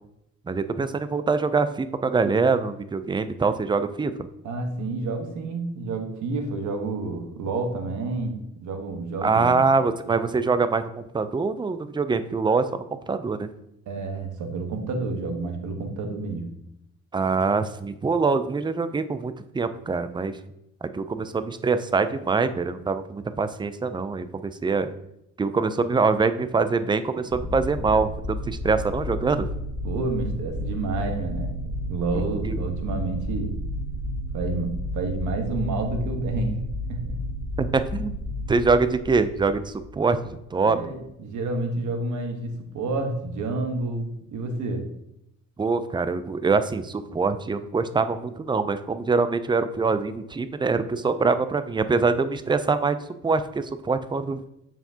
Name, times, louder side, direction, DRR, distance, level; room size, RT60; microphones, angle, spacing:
voice 1, 0.5-4.1 9.2-13.5 17.1-20.4 20.8-24.9 25.4-29.5 32.5-32.6 37.6-38.2 38.5-40.2 40.5-40.8 45.6-53.0 53.2-54.4, right 4 dB, 15° right, 11 dB, 0.4 m, -24 dB
voice 2, 4.4-9.7 10.0-10.3 13.9-16.5 29.8-33.6 34.3-36.6 36.9-37.2 40.6-44.9, right 3 dB, 75° right, 3 dB, 1.3 m, -29 dB
sound 1, 27.3-40.3, equal, 85° left, 2.2 m, -32 dB
7.1 x 5.7 x 2.8 m, 0.81 s
cardioid pair, 90°, 30 cm